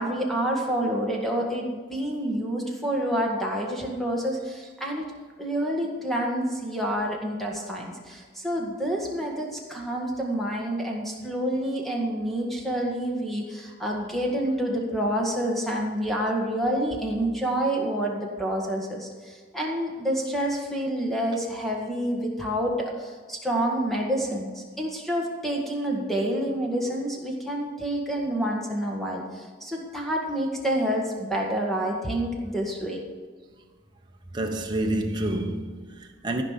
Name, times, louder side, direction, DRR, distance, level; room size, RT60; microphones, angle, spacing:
voice 1, 0.0-5.1 5.4-33.0, right 1 dB, ahead, 1.7 m, -28 dB
voice 2, 34.3-36.4, right 1 dB, 25° right, 1.0 m, -28 dB
15.0 x 5.2 x 7.4 m
head